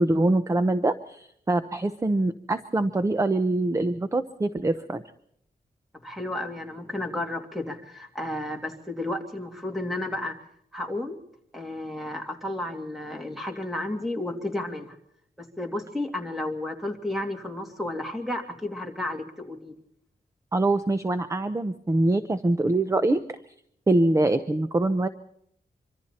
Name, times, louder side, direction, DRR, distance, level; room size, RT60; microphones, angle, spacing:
voice 1, 0.0-5.0 20.5-23.2 23.9-25.1, right 2 dB, 20° right, 10 dB, 0.8 m, -24 dB
voice 2, 6.0-10.3 10.7-11.2 11.5-15.0 15.4-19.7, left 1 dB, ahead, 3 dB, 2.7 m, -32 dB
25.5 x 25.0 x 4.3 m, 0.70 s
wide cardioid pair, 175°, 16 cm